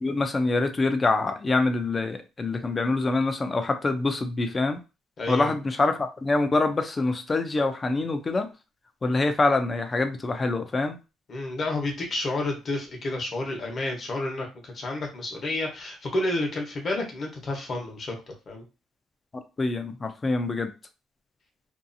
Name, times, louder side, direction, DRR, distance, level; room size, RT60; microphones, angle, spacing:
voice 1, 0.0-4.8 5.3-8.5 9.0-11.0 19.6-20.7, left 3 dB, 25° left, 8 dB, 0.4 m, -25 dB
voice 2, 5.2-5.5 11.3-18.1 18.5-18.6, left 2 dB, 40° left, 1 dB, 1.0 m, -30 dB
2.6 x 2.3 x 2.6 m, 0.29 s
cardioid pair, 125°, 0 cm